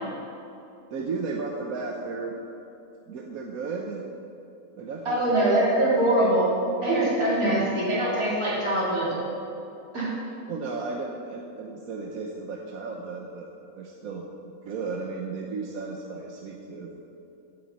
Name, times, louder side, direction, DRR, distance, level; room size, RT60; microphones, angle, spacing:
voice 1, 0.9-2.3 3.1-4.0 4.8-6.0 10.5-13.5 13.8-14.2 14.6-16.9, right 4 dB, 75° right, 0 dB, 1.3 m, -34 dB
voice 2, 5.1-6.5 6.8-9.1 9.9-10.1, right 1 dB, 90° right, -7 dB, 3.8 m, -23 dB
15.5 x 8.4 x 4.1 m, 2.8 s
omnidirectional pair, 1.5 m